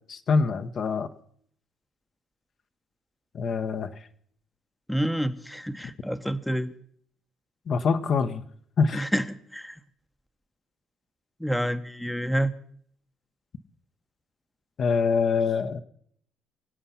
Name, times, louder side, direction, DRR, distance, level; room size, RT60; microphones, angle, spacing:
voice 1, 0.1-1.1 3.3-3.9 7.7-8.4 8.8-9.1 14.8-15.8, left 5 dB, 55° left, 8 dB, 1.0 m, -24 dB
voice 2, 4.9-6.7 8.9-9.8 11.4-12.5, equal, ahead, 10 dB, 0.9 m, -28 dB
24.0 x 8.1 x 5.7 m, 0.64 s
supercardioid pair, 75°, 0 cm